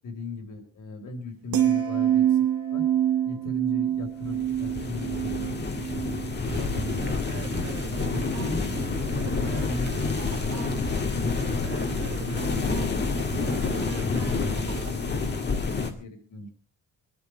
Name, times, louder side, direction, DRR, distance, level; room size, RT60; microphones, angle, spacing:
voice 1, 0.0-2.5 2.7-2.8 3.2-7.6 8.1-11.7 12.2-16.5, left 2 dB, 60° left, 5 dB, 4.2 m, -38 dB
sound 1, 1.5-7.8 8.1-8.5, right 11 dB, 75° right, 1.8 m, -27 dB
sound 2, 4.2-15.9, left 4 dB, 30° left, 2.0 m, -29 dB
sound 3, 6.5-14.9, right 6 dB, 40° right, 1.7 m, -38 dB
22.5 x 12.0 x 4.5 m, 0.37 s
wide cardioid pair, 160°, 35 cm